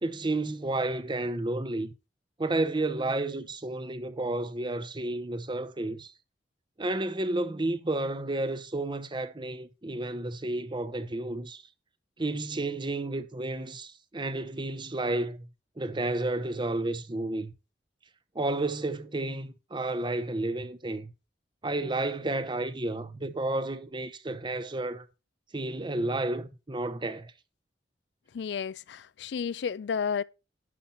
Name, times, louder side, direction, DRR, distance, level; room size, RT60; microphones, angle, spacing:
voice 1, 0.0-1.9 2.4-6.1 6.8-11.6 12.2-15.5 15.8-17.5 18.3-21.1 21.6-25.1 25.5-27.3, right 2 dB, 25° right, 0.8 m, -31 dB
voice 2, 28.3-30.2, left 6 dB, 70° left, 0.4 m, -32 dB
11.0 x 5.7 x 4.4 m
head